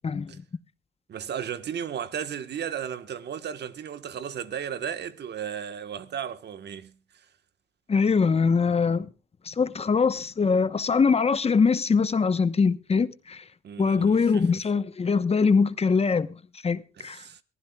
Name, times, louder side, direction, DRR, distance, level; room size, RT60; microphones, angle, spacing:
voice 1, 0.0-0.4 7.9-9.1 9.4-13.4 13.8-16.3 16.6-17.2, left 5 dB, 30° left, 0.9 m, -23 dB
voice 2, 1.1-6.9 13.6-14.4 17.0-17.4, right 8 dB, 60° right, 1.3 m, -35 dB
22.5 x 15.0 x 2.3 m
cardioid pair, 90°, 20 cm